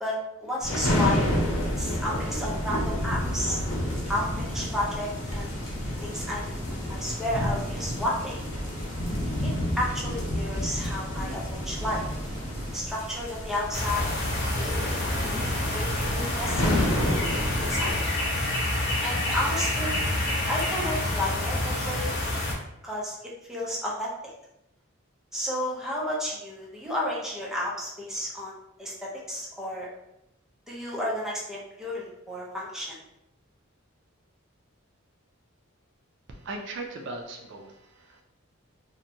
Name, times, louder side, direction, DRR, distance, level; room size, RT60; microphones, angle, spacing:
voice 1, 0.0-1.3 1.8-3.6 4.0-5.6 6.0-6.6 6.9-8.4 9.4-12.0 12.7-14.1 14.6-15.3 15.7-17.1 17.5-18.0 19.0-20.1 20.5-22.3 22.8-23.2 23.4-24.1 25.3-29.9 30.7-33.0, left 1 dB, ahead, -5 dB, 0.5 m, -32 dB
sound 1, 0.6-17.9, left 1 dB, 85° left, 0.7 m, -30 dB
sound 2, 3.6-12.8, equal, 35° right, 1.1 m, -41 dB
sound 3, 13.7-22.5, left 1 dB, 55° left, 0.6 m, -28 dB
voice 2, 36.3-38.2, right 2 dB, 60° right, 2 dB, 0.4 m, -38 dB
2.7 x 2.1 x 2.6 m, 0.84 s
head